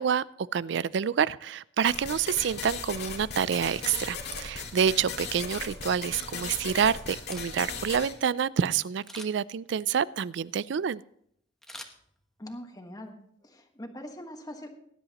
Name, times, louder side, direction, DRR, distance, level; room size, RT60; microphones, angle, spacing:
voice 1, 0.0-11.0, right 7 dB, 65° right, 20 dB, 0.4 m, -28 dB
sound 1, 1.9-8.1, left 5 dB, 60° left, 2.0 m, -38 dB
Camera, 7.3-7.9 9.0-9.6 11.6-12.6 13.0-13.1, left 1 dB, ahead, 1.1 m, -46 dB
voice 2, 12.4-13.1 13.4-14.7, equal, 20° left, 4 dB, 1.4 m, -42 dB
19.0 x 10.5 x 3.0 m, 0.68 s
head